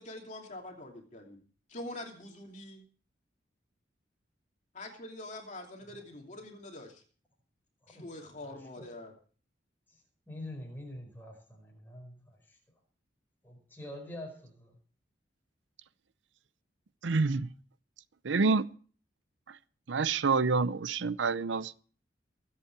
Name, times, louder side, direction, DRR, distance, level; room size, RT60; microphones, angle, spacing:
voice 1, 0.0-1.4 1.7-2.8 4.7-7.0 7.9-9.1, left 1 dB, 40° left, 2.8 m, -44 dB
voice 2, 8.5-8.9 10.3-12.4 13.4-14.7, left 1 dB, 10° left, 5.1 m, -45 dB
voice 3, 17.0-17.5 18.2-18.7 19.5-19.6 19.9-21.7, right 4 dB, 75° right, 0.6 m, -27 dB
23.5 x 8.5 x 4.7 m
head